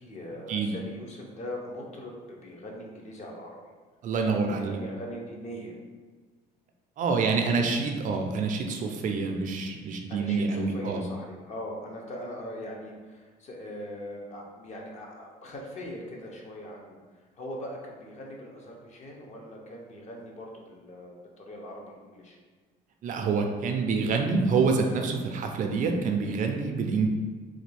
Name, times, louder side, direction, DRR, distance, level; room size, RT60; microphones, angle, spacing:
voice 1, 0.0-2.1 2.4-3.6 4.3-5.7 7.2-7.7 10.1-17.0 17.4-22.4, equal, 45° left, -1 dB, 0.7 m, -41 dB
voice 2, 4.0-4.8 7.0-11.0 23.0-27.1, right 4 dB, 50° right, 3 dB, 0.4 m, -27 dB
3.2 x 2.3 x 3.3 m, 1.4 s
cardioid pair, 110°, 17 cm